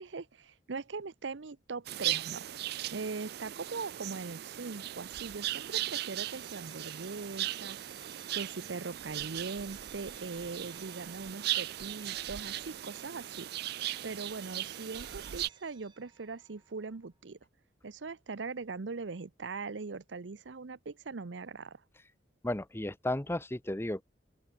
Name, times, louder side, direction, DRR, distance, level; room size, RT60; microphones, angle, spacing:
voice 1, 0.0-2.5 2.9-8.1 8.3-13.5 14.0-17.4 17.8-21.8, right 4 dB, 80° right, 0.7 m, -41 dB
sound 1, 1.9-15.5, right 14 dB, 60° right, 0.4 m, -38 dB
sound 2, 5.4-17.1, right 5 dB, 25° right, 2.2 m, -58 dB
voice 2, 22.4-24.0, left 1 dB, 15° left, 0.9 m, -34 dB
open air
head